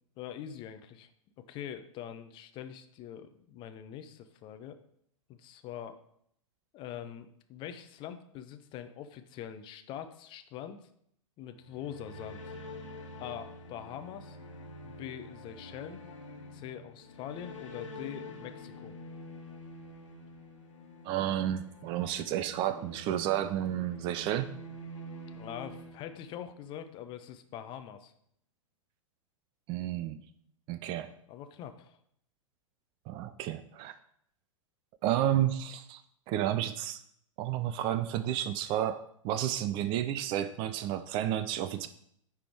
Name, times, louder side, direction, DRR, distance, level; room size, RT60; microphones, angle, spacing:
voice 1, 0.2-1.1 1.4-4.8 5.3-6.0 6.7-10.8 11.4-12.4 13.2-14.4 14.8-16.0 16.5-19.0 25.3-28.1 31.3-32.0, left 9 dB, 30° left, 9 dB, 0.6 m, -43 dB
sound 1, 11.5-26.7, left 1 dB, 70° left, 1.3 m, -47 dB
voice 2, 21.0-24.5 29.7-30.2 30.7-31.1 33.1-33.9 35.0-36.0 36.3-37.0 37.4-41.9, right 11 dB, 30° right, 12 dB, 0.4 m, -31 dB
9.9 x 3.5 x 4.5 m, 0.69 s
figure-of-eight pair, 100°, 17 cm